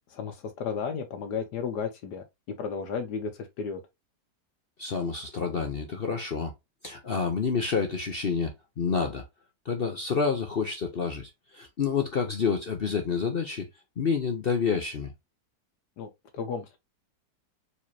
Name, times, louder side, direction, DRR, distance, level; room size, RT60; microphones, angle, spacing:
voice 1, 0.1-2.2 2.6-3.3 3.6-3.8 16.0-16.8, left 6 dB, 70° left, 1.4 m, -33 dB
voice 2, 4.8-6.5 6.8-9.2 9.6-13.7 14.0-15.1, left 5 dB, 50° left, 0.7 m, -28 dB
4.8 x 4.1 x 2.7 m
omnidirectional pair, 1.9 m